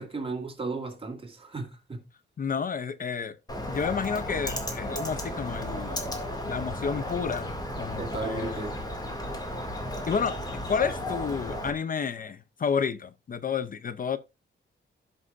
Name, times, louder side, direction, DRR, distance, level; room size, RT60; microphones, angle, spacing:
voice 1, 0.0-2.0 8.0-8.7, right 3 dB, 30° right, 2.0 m, -35 dB
voice 2, 2.4-3.4 3.7-6.0 6.4-8.7 10.1-10.4 10.7-14.2, left 6 dB, 45° left, 0.5 m, -30 dB
Bird, 3.5-11.7, left 1 dB, 20° left, 2.1 m, -34 dB
16.0 x 5.4 x 2.4 m
wide cardioid pair, 115°, 19 cm